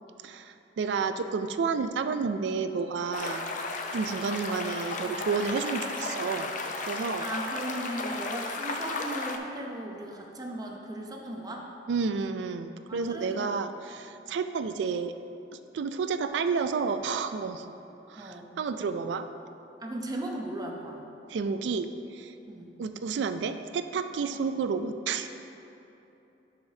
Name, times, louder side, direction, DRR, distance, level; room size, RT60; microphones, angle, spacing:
voice 1, 0.2-3.4 3.9-6.5 6.9-7.2 11.9-15.1 15.7-17.6 18.1-19.3 21.3-21.9 22.1-22.3 22.8-25.3, right 5 dB, 85° right, 9 dB, 0.3 m, -30 dB
sound 1, 3.1-9.4, left 3 dB, 45° left, 0.5 m, -34 dB
voice 2, 7.2-11.7 12.9-13.5 18.2-18.5 19.8-21.0 22.5-22.8 24.2-24.3, right 1 dB, 20° right, 0 dB, 0.6 m, -37 dB
11.0 x 5.0 x 2.7 m, 2.9 s
head